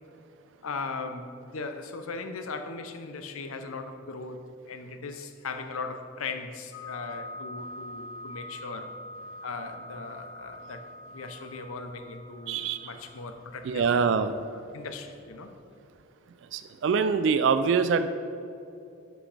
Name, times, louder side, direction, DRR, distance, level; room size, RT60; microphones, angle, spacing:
voice 1, 0.6-8.9 9.4-13.9 14.5-15.5, left 4 dB, 90° left, 8 dB, 0.7 m, -38 dB
sound 1, 6.7-15.6, left 1 dB, 75° left, 1.1 m, -44 dB
voice 2, 12.5-12.9 13.6-14.3 16.5-18.1, right 5 dB, 60° right, 10 dB, 0.3 m, -24 dB
11.0 x 6.1 x 3.3 m, 2.7 s
head